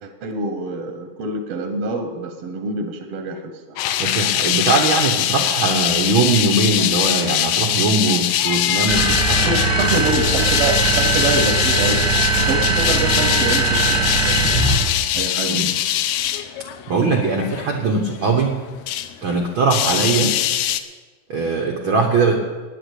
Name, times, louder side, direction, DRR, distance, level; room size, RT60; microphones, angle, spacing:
voice 1, 0.0-3.8 9.4-12.1 12.4-14.5 15.1-15.7 20.1-20.3, right 2 dB, 70° right, 6 dB, 1.5 m, -26 dB
sound 1, 3.8-19.1 19.4-20.8, left 12 dB, 80° left, 1.7 m, -22 dB
voice 2, 4.0-9.5 15.5-15.7 16.9-18.6 19.2-20.3 21.3-22.3, right 3 dB, 85° right, 1 dB, 1.1 m, -20 dB
sound 2, 8.9-15.0, right 4 dB, 25° right, 0.6 m, -20 dB
9.9 x 9.8 x 8.2 m, 1.4 s
omnidirectional pair, 4.0 m